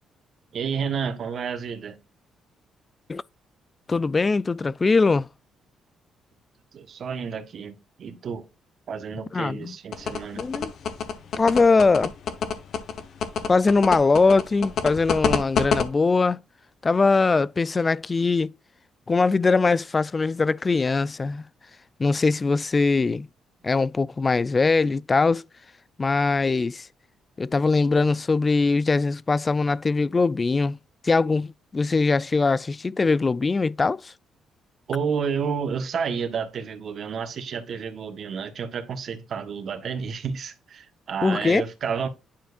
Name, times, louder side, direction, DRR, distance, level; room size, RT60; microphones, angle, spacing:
voice 1, 0.5-2.0 6.7-8.4 8.9-10.4 34.9-42.1, right 6 dB, 60° right, 1.4 m, -30 dB
voice 2, 3.9-5.3 9.3-9.7 10.4-10.7 11.4-12.1 13.5-16.4 16.8-18.5 19.1-21.4 22.0-23.3 23.6-25.4 26.0-26.9 27.4-30.8 31.0-34.1 41.2-41.6, left 4 dB, 30° left, 0.3 m, -21 dB
sound 1, 9.9-15.8, left 6 dB, 65° left, 1.1 m, -25 dB
10.0 x 4.6 x 2.6 m
cardioid pair, 90°, 0 cm